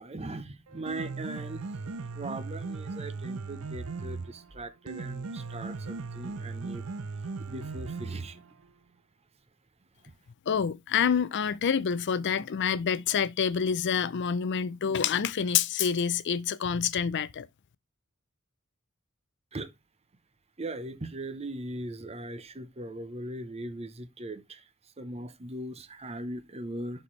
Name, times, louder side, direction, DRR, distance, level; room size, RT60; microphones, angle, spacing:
voice 1, 0.0-1.7 2.1-6.8 7.4-8.4 10.0-10.2 19.5-19.7 20.6-27.0, right 1 dB, 30° right, 0.8 m, -39 dB
Piano, 0.7-8.7, right 4 dB, 75° right, 0.6 m, -38 dB
voice 2, 10.5-17.5, left 7 dB, 55° left, 0.5 m, -27 dB
11.5 x 4.3 x 3.2 m
head